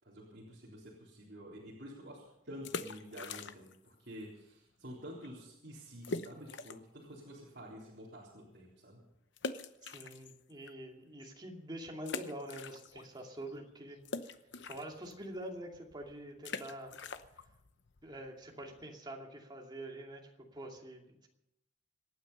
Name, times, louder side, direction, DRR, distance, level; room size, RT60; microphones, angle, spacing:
voice 1, 0.0-9.0, equal, 60° right, -6 dB, 3.9 m, -49 dB
sound 1, 2.5-3.9 4.1-4.2 4.8-5.0 5.2-5.3 6.0-7.0 7.4-7.5 9.4-10.7 11.2-11.3 12.0-13.2 13.5-19.0, left 4 dB, 65° left, 0.9 m, -44 dB
voice 2, 9.8-14.0 14.3-14.4 14.7-16.9 18.0-21.3, right 1 dB, 25° right, 0 dB, 2.6 m, -46 dB
26.0 x 9.4 x 5.6 m, 0.87 s
head